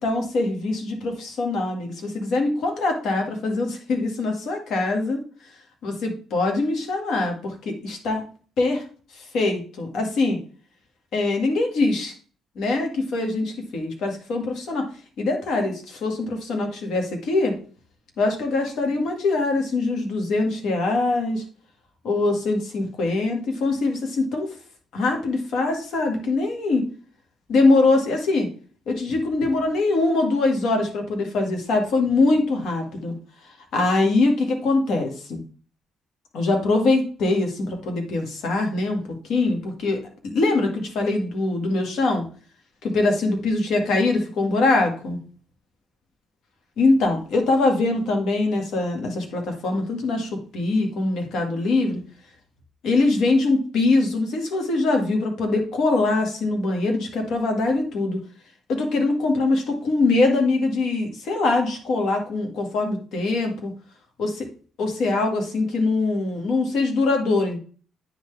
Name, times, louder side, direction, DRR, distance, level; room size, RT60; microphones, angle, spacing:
voice 1, 0.0-5.2 5.8-8.2 8.6-8.8 9.1-10.4 11.1-12.1 12.5-14.9 15.2-17.5 18.2-21.4 22.0-24.5 24.9-26.8 27.5-28.5 28.9-33.1 33.7-35.4 36.3-39.0 39.3-42.2 42.8-45.2 46.8-52.0 52.8-58.2 58.7-63.7 64.2-64.5 64.8-67.6, left 3 dB, 75° left, 3 dB, 1.8 m, -23 dB
9.3 x 4.0 x 3.3 m, 0.40 s
cardioid pair, 90°, 0 cm